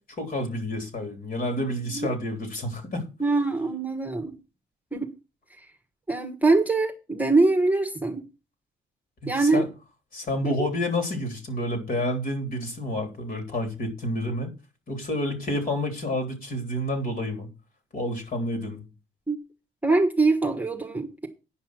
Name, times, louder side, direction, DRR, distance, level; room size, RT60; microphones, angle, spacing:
voice 1, 0.2-3.1 9.2-9.7 10.1-14.5 14.9-17.5 17.9-18.8, left 1 dB, 45° left, 3.5 m, -29 dB
voice 2, 3.2-4.4 4.9-5.1 6.1-8.2 9.3-9.6 10.4-10.7 19.3-19.4 19.8-21.3, right 3 dB, 10° right, 1.5 m, -23 dB
9.8 x 5.5 x 6.2 m
cardioid pair, 90°, 20 cm